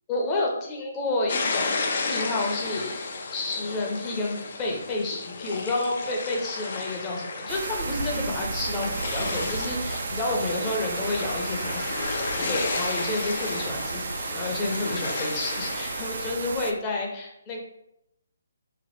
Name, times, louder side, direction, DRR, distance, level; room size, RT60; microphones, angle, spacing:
voice 1, 0.1-1.7 2.0-3.0 3.3-17.6, left 2 dB, 20° left, -1 dB, 0.7 m, -30 dB
sound 1, 1.3-16.3, left 3 dB, 50° left, 0.5 m, -33 dB
sound 2, 7.5-16.7, right 4 dB, 60° right, 0.3 m, -33 dB
3.0 x 2.4 x 4.3 m, 0.80 s
hypercardioid pair, 155°, 0 cm